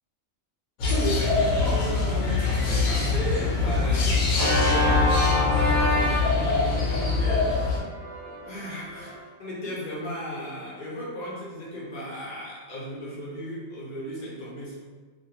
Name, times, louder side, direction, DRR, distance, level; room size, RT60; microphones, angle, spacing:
sound 1, 0.8-7.8, left 4 dB, 75° left, 0.9 m, -24 dB
voice 1, 0.8-7.8 8.5-9.1 9.4-14.8, equal, 45° left, -6 dB, 0.6 m, -35 dB
Organ, 4.3-9.2, left 1 dB, 15° right, 0.5 m, -27 dB
2.4 x 2.2 x 2.8 m, 1.4 s
omnidirectional pair, 1.4 m